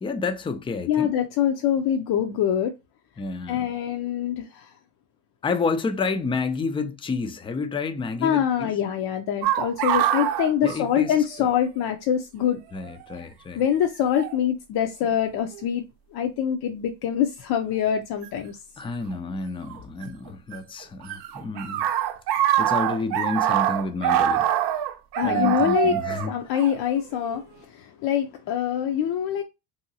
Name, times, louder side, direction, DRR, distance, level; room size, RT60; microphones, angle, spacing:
voice 1, 0.0-1.1 3.2-3.6 5.4-8.7 10.6-11.1 12.7-13.6 18.8-21.8 22.4-24.5 25.2-26.3, left 4 dB, 15° left, 0.3 m, -30 dB
voice 2, 0.9-2.7 3.5-4.7 8.2-12.6 13.6-15.8 16.1-18.6 25.2-29.4, left 9 dB, 65° left, 0.6 m, -24 dB
sound 1, 9.4-11.5 11.8-11.9 12.9-13.1 14.1-14.4 15.1-15.6 18.2-18.3 19.7-20.6 20.8-27.4, right 11 dB, 70° right, 0.6 m, -25 dB
2.8 x 2.7 x 2.7 m
supercardioid pair, 90°, 41 cm